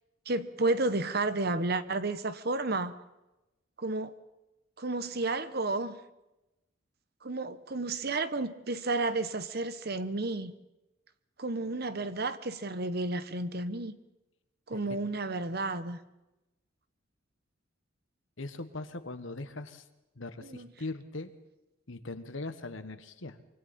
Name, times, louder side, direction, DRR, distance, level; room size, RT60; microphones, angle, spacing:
voice 1, 0.3-2.9 3.8-4.1 4.8-6.0 7.2-10.5 11.4-14.0 14.7-16.0 20.4-20.7, right 2 dB, 50° right, 1.1 m, -32 dB
voice 2, 18.4-19.8 20.1-21.3 21.9-23.4, left 2 dB, 70° left, 1.4 m, -40 dB
25.5 x 23.5 x 4.3 m
head